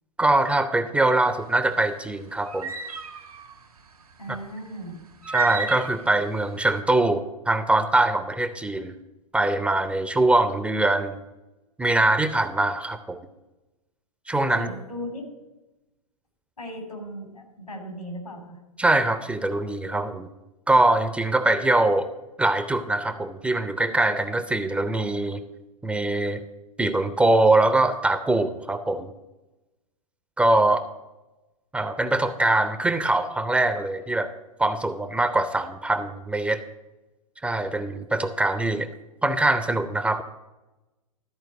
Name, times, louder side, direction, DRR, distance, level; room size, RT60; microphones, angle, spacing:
voice 1, 0.2-2.7 4.3-4.4 5.3-8.9 9.3-11.2 11.8-13.2 14.3-14.7 18.8-20.3 20.7-22.1 22.4-25.4 25.8-26.4 26.8-29.1 30.4-30.8 31.7-34.3 34.6-36.6 37.4-38.9 39.2-40.2, right 2 dB, 5° right, 10 dB, 0.4 m, -23 dB
sound 1, 1.2-6.7, right 6 dB, 80° right, 1.2 m, -34 dB
voice 2, 4.2-5.0 14.6-15.3 16.6-18.6, equal, 90° left, 2 dB, 2.8 m, -37 dB
13.0 x 4.5 x 7.6 m, 1.0 s
figure-of-eight pair, 105°, 19 cm